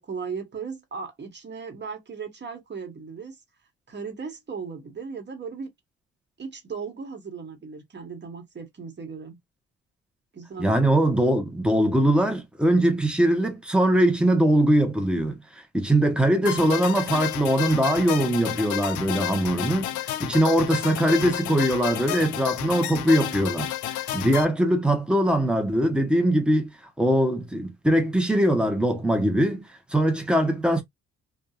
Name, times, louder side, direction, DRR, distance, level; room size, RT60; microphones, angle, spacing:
voice 1, 0.0-3.4 3.9-5.7 6.4-9.4 10.3-10.7 16.3-16.8 20.7-21.0, right 5 dB, 35° right, 1.3 m, -37 dB
voice 2, 10.6-26.7 27.0-29.6 29.9-30.8, right 1 dB, 5° right, 0.9 m, -22 dB
sound 1, 16.5-24.5, left 12 dB, 80° left, 0.5 m, -31 dB
2.6 x 2.4 x 2.3 m
cardioid pair, 90°, 30 cm